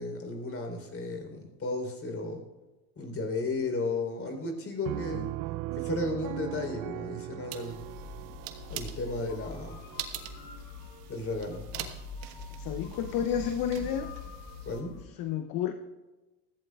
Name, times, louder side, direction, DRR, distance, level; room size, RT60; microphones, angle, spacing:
voice 1, 0.0-2.4 3.0-5.4 5.7-7.9 8.7-9.8 11.1-11.7 14.6-15.0, left 2 dB, 30° left, 4 dB, 3.8 m, -34 dB
Piano, 4.9-10.4, right 18 dB, 50° right, 0.5 m, -39 dB
sound 1, 7.5-14.8, right 11 dB, 75° right, 1.5 m, -44 dB
sound 2, 7.7-15.0, left 4 dB, 80° left, 1.7 m, -44 dB
voice 2, 12.6-14.1 15.2-15.7, left 9 dB, 45° left, 8 dB, 0.9 m, -30 dB
20.0 x 15.0 x 2.4 m, 1.1 s
supercardioid pair, 105°, 46 cm